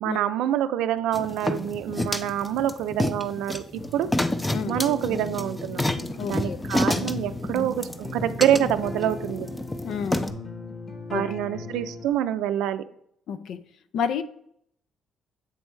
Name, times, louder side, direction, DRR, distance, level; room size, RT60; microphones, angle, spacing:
voice 1, 0.0-4.1 4.7-5.8 6.3-9.5 11.1-12.8, right 11 dB, 90° right, 0.4 m, -26 dB
sound 1, 1.1-10.3, left 1 dB, 10° left, 0.5 m, -29 dB
sound 2, 3.8-12.1, left 3 dB, 40° left, 1.0 m, -38 dB
voice 2, 6.2-6.6 9.8-10.4 11.1-11.3 13.3-13.6 13.9-14.2, left 7 dB, 70° left, 0.5 m, -30 dB
8.2 x 3.2 x 4.6 m
cardioid pair, 95°, 0 cm